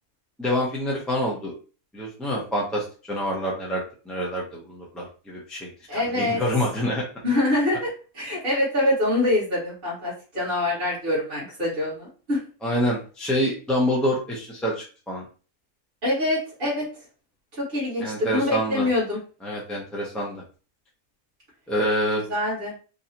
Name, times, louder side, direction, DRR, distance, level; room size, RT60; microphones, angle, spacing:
voice 1, 0.4-1.5 1.9-7.0 12.6-15.2 18.0-18.9 19.4-20.4 21.7-22.2, equal, ahead, -4 dB, 0.4 m, -27 dB
voice 2, 5.9-6.4 7.2-12.4 16.0-16.8 17.5-19.2 22.3-22.7, left 1 dB, 35° right, -7 dB, 2.0 m, -25 dB
3.9 x 2.7 x 2.8 m, 0.36 s
omnidirectional pair, 1.5 m